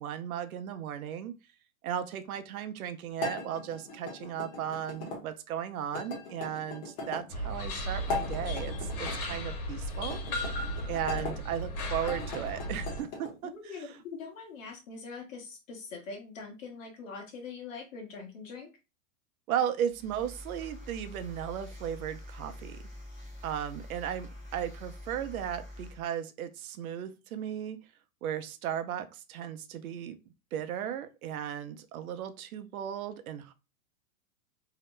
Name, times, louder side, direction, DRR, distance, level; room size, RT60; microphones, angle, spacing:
voice 1, 0.0-1.3 1.8-10.2 10.9-13.9 19.5-22.8 23.4-27.8 28.2-30.2 30.5-33.5, right 9 dB, 85° right, 0.6 m, -36 dB
sound 1, 3.2-5.2 5.9-7.2 8.0-9.2 10.0-11.3 11.9-13.3, left 3 dB, 30° left, 0.9 m, -39 dB
sound 2, 7.3-13.0, equal, 85° left, 1.2 m, -35 dB
voice 2, 13.4-18.7, left 4 dB, 65° left, 1.0 m, -43 dB
sound 3, 19.9-26.0, left 1 dB, 15° left, 0.4 m, -46 dB
2.8 x 2.1 x 3.2 m
supercardioid pair, 170°, 42 cm